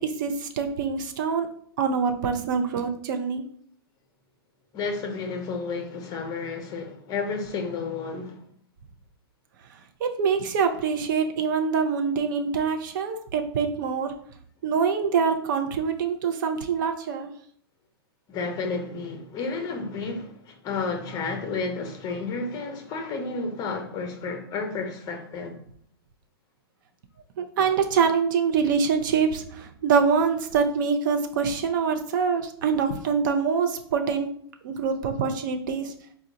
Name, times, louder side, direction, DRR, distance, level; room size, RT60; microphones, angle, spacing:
voice 1, 0.0-1.5 1.8-3.4 10.0-14.1 14.6-17.3 27.4-34.3 34.6-35.9, right 6 dB, 50° right, 0.6 m, -25 dB
voice 2, 4.7-8.4 18.3-25.6, left 4 dB, 30° left, 0.8 m, -31 dB
4.4 x 2.3 x 3.8 m
figure-of-eight pair, 105°, 13 cm